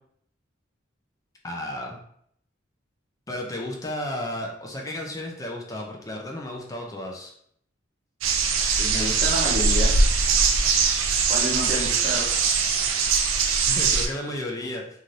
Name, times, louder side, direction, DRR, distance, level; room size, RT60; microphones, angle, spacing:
voice 1, 1.4-2.0 3.3-7.3 12.0-12.2 13.6-14.8, left 1 dB, 15° left, 0 dB, 0.4 m, -33 dB
sound 1, 8.2-14.1, right 5 dB, 85° right, 0.4 m, -22 dB
voice 2, 8.8-9.9 11.3-12.3, equal, 35° right, -8 dB, 0.7 m, -29 dB
2.6 x 2.5 x 3.1 m, 0.67 s
head